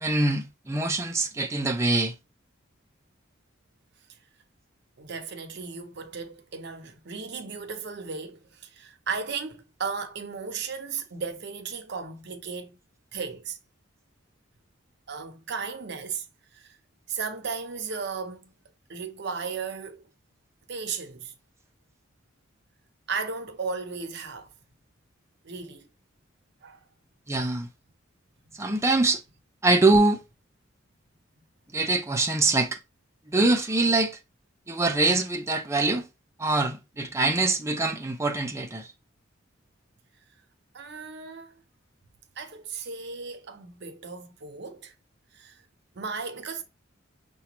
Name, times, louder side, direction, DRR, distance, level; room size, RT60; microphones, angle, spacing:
voice 1, 0.0-2.1 27.3-27.7 28.6-29.2 29.6-30.2 31.7-32.8 33.3-34.2 34.7-36.1 36.4-38.9, right 2 dB, 15° right, 0.5 m, -24 dB
voice 2, 5.0-12.8 13.1-13.6 15.1-16.3 16.5-16.8 17.1-18.5 18.9-20.0 20.7-21.3 23.1-24.5 25.4-25.9 26.6-26.8 28.4-28.9 40.7-41.6 42.4-44.9 45.3-45.6 45.9-46.6, right 5 dB, 55° right, 0.6 m, -35 dB
5.8 x 2.2 x 2.9 m
head